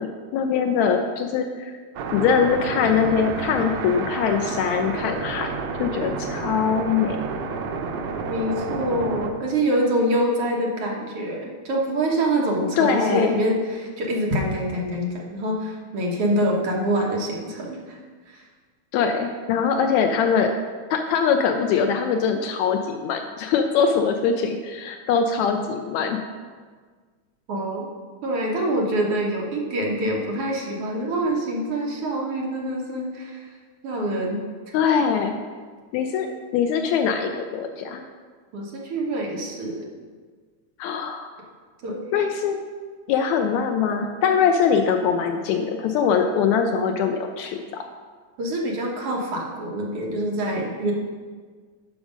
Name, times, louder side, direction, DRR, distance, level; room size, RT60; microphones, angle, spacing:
voice 1, 0.0-1.7 2.1-5.5 5.8-7.2 12.8-13.4 18.9-20.5 20.9-26.2 34.7-35.3 35.9-36.3 36.5-38.0 40.8-41.3 42.1-42.6 43.1-47.9, left 6 dB, 80° left, 5 dB, 1.7 m, -22 dB
sound 1, 1.9-9.3, right 4 dB, 80° right, 1.3 m, -30 dB
voice 2, 8.3-18.0 18.3-18.4 27.5-27.9 28.2-33.4 33.8-34.4 38.5-39.9 41.8-42.1 48.4-50.9, right 1 dB, 55° right, -2 dB, 1.9 m, -25 dB
11.0 x 5.1 x 5.0 m, 1.6 s
omnidirectional pair, 3.5 m